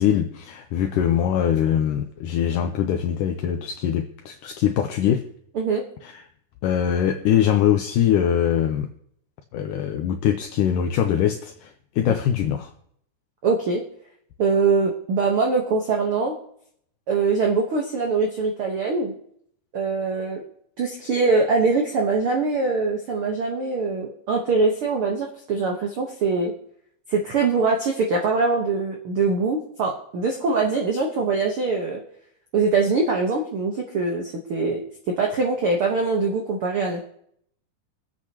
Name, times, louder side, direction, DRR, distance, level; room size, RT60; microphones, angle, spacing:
voice 1, 0.0-5.2 6.0-6.1 6.6-8.9 9.5-12.7, left 9 dB, 80° left, 5 dB, 2.0 m, -22 dB
voice 2, 13.4-13.8 14.4-16.3 17.1-19.1 19.7-20.4 20.8-26.5 27.1-32.0 32.5-34.8 35.1-37.0, right 4 dB, 70° right, 1 dB, 1.3 m, -23 dB
24.5 x 8.3 x 2.9 m, 0.68 s
omnidirectional pair, 4.2 m